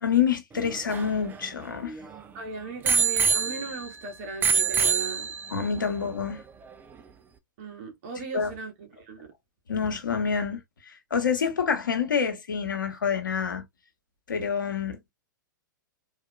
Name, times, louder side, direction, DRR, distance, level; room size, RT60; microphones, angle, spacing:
voice 1, 0.0-1.9 5.5-6.4 8.3-8.5 9.7-13.6 14.3-15.1, left 7 dB, 75° left, 1.2 m, -27 dB
Bicycle bell, 0.6-2.2 2.9-4.0 4.4-5.7 6.4-6.5, right 6 dB, 15° right, 0.6 m, -26 dB
voice 2, 2.3-5.3 7.6-9.3, right 4 dB, 45° right, 1.6 m, -37 dB
4.1 x 2.8 x 2.3 m
figure-of-eight pair, 105°, 11 cm